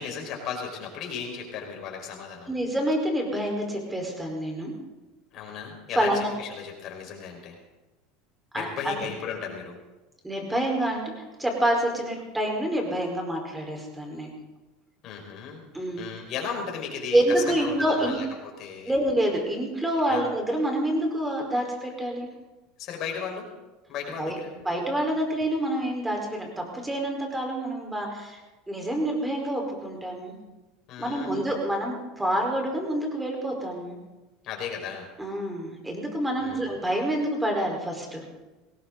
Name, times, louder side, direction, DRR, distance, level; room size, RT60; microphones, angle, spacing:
voice 1, 0.0-2.5 5.3-7.5 8.5-9.8 15.0-15.6 16.0-19.0 20.1-20.2 22.8-23.5 23.9-24.5 30.9-31.5 34.4-35.1 36.4-36.7, left 6 dB, 50° left, 1 dB, 5.2 m, -35 dB
voice 2, 2.5-4.7 5.9-6.3 8.5-9.1 10.2-11.0 11.4-14.3 15.7-16.1 17.1-18.2 18.8-22.3 24.2-24.3 24.6-28.4 28.7-30.3 31.0-34.0 35.2-38.3, right 1 dB, 10° right, 1 dB, 4.5 m, -27 dB
19.5 x 17.0 x 4.0 m, 1.1 s
supercardioid pair, 105°, 0 cm